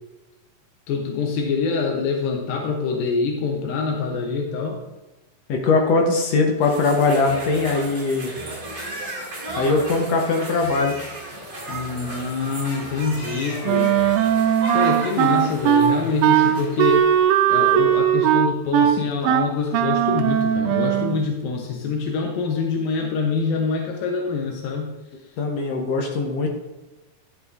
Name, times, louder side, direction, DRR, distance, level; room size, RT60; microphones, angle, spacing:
voice 1, 0.9-4.8 11.7-13.9 14.7-17.1 17.5-24.9, left 4 dB, 85° left, 1 dB, 2.7 m, -25 dB
voice 2, 5.5-8.3 9.6-10.9 25.4-26.5, left 3 dB, 65° left, 2 dB, 1.7 m, -21 dB
sound 1, 6.6-17.0, right 1 dB, 15° right, 1.5 m, -35 dB
Wind instrument woodwind instrument, 13.6-21.2, right 10 dB, 85° right, 2.3 m, -19 dB
11.5 x 7.7 x 2.5 m, 1.1 s
omnidirectional pair, 4.0 m